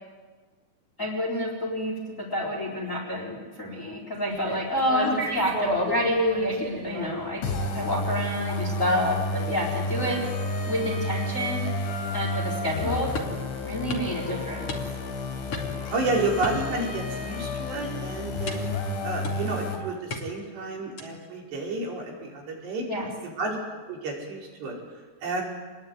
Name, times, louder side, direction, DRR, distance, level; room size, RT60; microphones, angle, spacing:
voice 1, 1.0-7.4 7.7-10.2 10.7-11.6 12.1-13.1 13.6-14.7 22.9-23.1, equal, 15° left, 1 dB, 4.0 m, -28 dB
sound 1, 4.3-10.4, equal, 45° right, 6.1 m, -36 dB
sound 2, 7.4-19.8, left 2 dB, 85° left, 5.8 m, -31 dB
sound 3, 13.1-13.4 13.9-14.1 14.7-15.1 15.5-15.9 16.4-17.2 17.5-17.8 18.5-18.8 19.2-19.6 20.1-20.5 21.0-21.3, left 3 dB, 35° left, 3.2 m, -36 dB
voice 2, 15.9-18.7 19.0-22.9 23.2-23.6 23.9-24.8 25.2-25.4, right 2 dB, 65° right, -2 dB, 7.5 m, -30 dB
28.5 x 21.0 x 9.6 m, 1.4 s
omnidirectional pair, 5.2 m